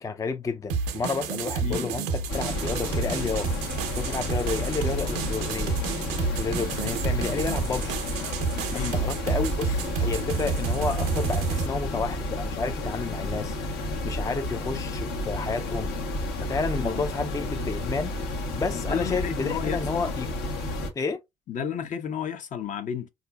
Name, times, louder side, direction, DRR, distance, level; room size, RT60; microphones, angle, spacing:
voice 1, 0.0-3.5 4.0-5.8 6.3-8.0 8.7-15.9 16.4-18.1 18.6-20.3 21.0-21.2, left 4 dB, 20° left, 0.4 m, -31 dB
sound 1, 0.7-11.7, right 5 dB, 80° right, 0.6 m, -30 dB
sound 2, 2.3-20.9, left 1 dB, 75° left, 1.0 m, -31 dB
voice 2, 8.7-9.0 16.8-17.0 18.7-19.8 21.5-23.1, left 8 dB, 50° left, 0.7 m, -32 dB
3.7 x 2.6 x 2.2 m
supercardioid pair, 65°, 16 cm